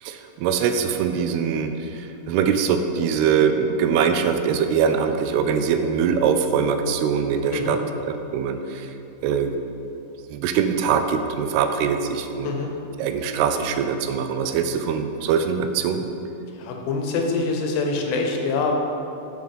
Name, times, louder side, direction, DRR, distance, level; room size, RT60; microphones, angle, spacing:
voice 1, 0.0-8.9 9.2-9.5 10.3-12.5 13.0-16.1, right 6 dB, 90° right, 7 dB, 2.5 m, -23 dB
voice 2, 16.6-18.7, left 4 dB, 80° left, 2 dB, 2.5 m, -25 dB
7.6 x 4.8 x 5.4 m, 2.9 s
omnidirectional pair, 4.5 m